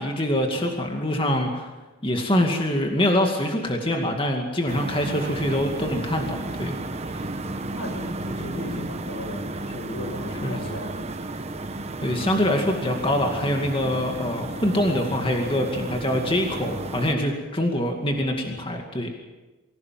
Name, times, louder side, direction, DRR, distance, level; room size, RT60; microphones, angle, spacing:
voice 1, 0.0-1.7 2.0-6.8 7.1-7.3 10.4-10.6 12.0-19.1, left 1 dB, 25° left, 2 dB, 2.2 m, -24 dB
sound 1, 4.7-17.2, right 2 dB, 30° right, 1.1 m, -33 dB
voice 2, 7.7-11.1, equal, 85° left, 5 dB, 5.7 m, -36 dB
24.5 x 16.5 x 7.7 m, 1.2 s
head